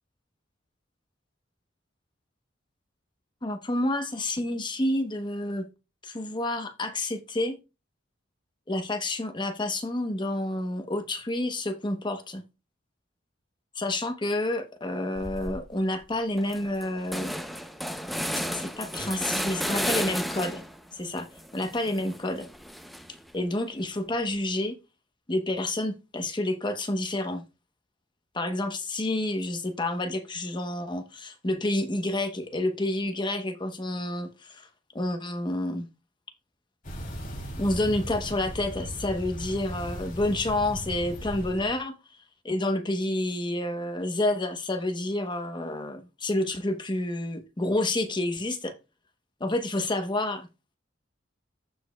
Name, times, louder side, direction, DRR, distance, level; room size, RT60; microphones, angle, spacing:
voice 1, 3.4-5.7 6.0-7.6 8.7-12.4 13.7-17.3 18.5-20.6 20.9-21.3 21.5-22.5 23.3-24.8 25.3-27.4 28.3-34.7 34.9-35.9 37.6-41.9 42.4-48.7 49.4-50.5, left 1 dB, 25° left, 0.9 m, -29 dB
sound 1, 15.2-15.6 16.0-16.1 16.4-20.8 21.2-23.3, equal, ahead, 0.6 m, -33 dB
sound 2, 36.8-41.8, equal, 45° left, 2.8 m, -37 dB
14.5 x 5.1 x 2.3 m
head